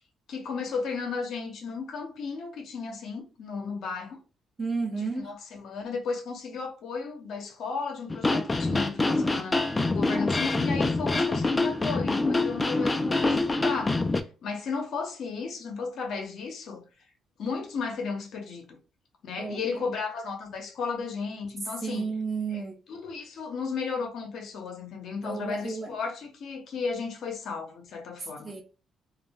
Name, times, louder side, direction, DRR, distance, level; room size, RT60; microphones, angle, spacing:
voice 1, 0.3-4.2 4.9-14.0 14.4-16.8 17.4-18.8 19.2-22.1 22.5-22.6 22.9-28.5, left 5 dB, 70° left, 0.7 m, -34 dB
voice 2, 4.6-5.3 19.4-19.9 21.8-22.8 25.2-26.0 28.4-28.6, right 4 dB, 35° right, 0.6 m, -32 dB
sound 1, 8.1-14.2, left 2 dB, 20° left, 0.4 m, -25 dB
2.3 x 2.1 x 3.4 m
cardioid pair, 90°, 0 cm